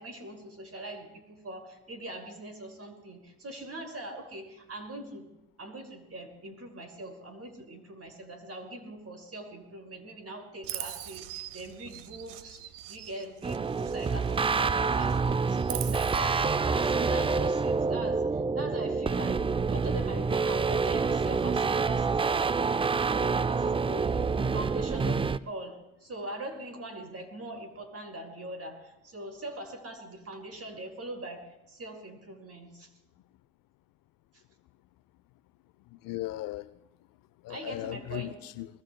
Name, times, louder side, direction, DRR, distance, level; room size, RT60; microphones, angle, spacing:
voice 1, 0.0-5.3 5.6-22.7 23.0-24.2 24.5-32.9 34.3-34.4 37.5-38.4, right 1 dB, 40° right, 2 dB, 5.6 m, -42 dB
Chirp tweet, 10.6-14.7 15.0-16.2, right 14 dB, 85° right, 0.9 m, -42 dB
sound 1, 13.4-25.4, right 4 dB, 15° right, 0.4 m, -27 dB
voice 2, 35.9-36.7 37.4-38.7, left 16 dB, 65° left, 15 dB, 0.7 m, -37 dB
24.0 x 21.0 x 2.3 m, 0.90 s
hypercardioid pair, 60°, 36 cm